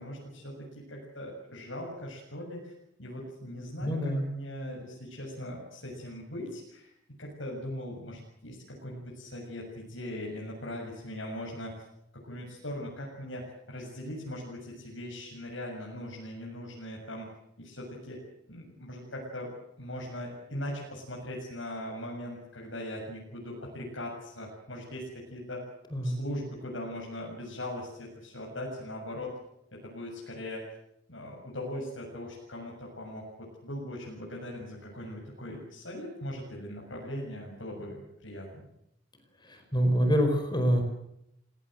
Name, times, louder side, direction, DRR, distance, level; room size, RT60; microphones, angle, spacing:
voice 1, 0.0-2.7 3.0-6.9 7.2-11.9 12.1-17.3 17.6-25.7 26.0-29.4 29.7-30.7 31.1-38.6, left 1 dB, 70° left, -2 dB, 7.1 m, -40 dB
voice 2, 3.8-4.2 25.9-26.2 39.4-40.8, equal, 20° left, 6 dB, 4.7 m, -26 dB
30.0 x 18.0 x 7.9 m, 0.79 s
head